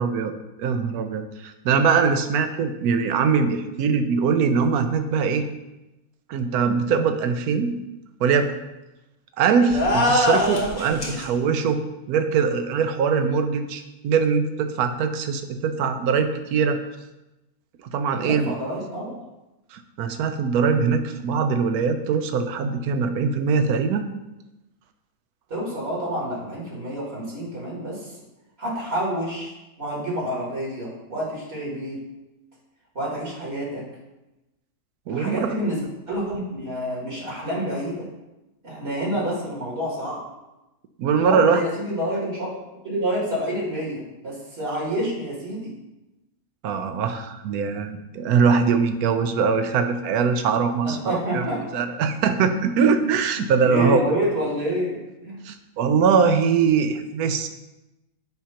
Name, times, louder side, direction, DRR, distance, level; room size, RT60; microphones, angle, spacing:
voice 1, 0.0-5.5 6.3-7.7 8.2-8.5 9.4-11.8 12.1-16.8 17.9-18.6 19.7-24.1 35.1-35.6 41.0-41.6 46.6-51.4 51.7-54.0 55.4-57.5, right 6 dB, 80° right, 8 dB, 1.1 m, -22 dB
sound 1, 9.7-11.2, left 1 dB, 30° left, 1.4 m, -22 dB
voice 2, 18.1-19.1 25.5-28.2 28.6-32.0 32.9-33.8 35.1-35.8 36.1-38.1 38.6-40.2 41.2-42.5 42.8-45.7 50.8-51.6 53.4-55.4, equal, 40° right, -5 dB, 2.2 m, -28 dB
7.4 x 2.9 x 5.6 m, 1.0 s
omnidirectional pair, 1.6 m